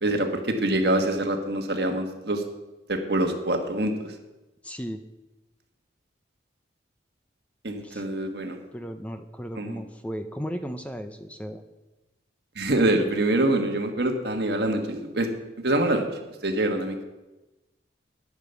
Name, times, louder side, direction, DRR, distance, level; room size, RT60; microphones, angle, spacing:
voice 1, 0.0-2.4 2.9-4.1 7.6-8.6 9.6-9.8 12.5-15.3 15.6-16.0 16.4-17.0, right 1 dB, 60° right, 4 dB, 1.5 m, -25 dB
voice 2, 4.6-5.0 7.8-8.1 8.7-11.6, equal, 5° left, 8 dB, 0.6 m, -35 dB
10.5 x 8.9 x 6.9 m, 1.1 s
head